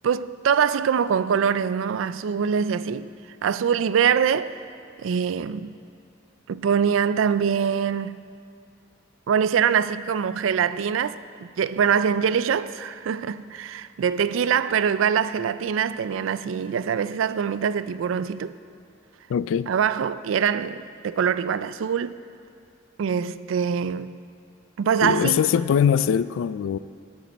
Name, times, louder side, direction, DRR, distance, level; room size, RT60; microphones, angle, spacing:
voice 1, 0.0-3.1 3.4-4.6 5.0-5.8 6.5-8.3 9.3-18.6 19.7-22.2 23.0-24.2 24.8-25.4, right 7 dB, 80° right, 0.4 m, -24 dB
voice 2, 19.3-19.7 25.0-26.8, left 8 dB, 85° left, 0.3 m, -22 dB
18.0 x 7.3 x 4.1 m
head